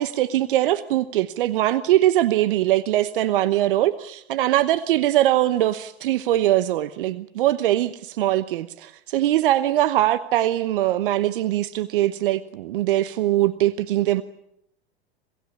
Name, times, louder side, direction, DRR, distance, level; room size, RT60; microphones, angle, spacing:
voice 1, 0.0-14.2, right 14 dB, 60° right, 14 dB, 1.1 m, -22 dB
27.5 x 18.5 x 8.5 m, 0.78 s
figure-of-eight pair, 95°, 31 cm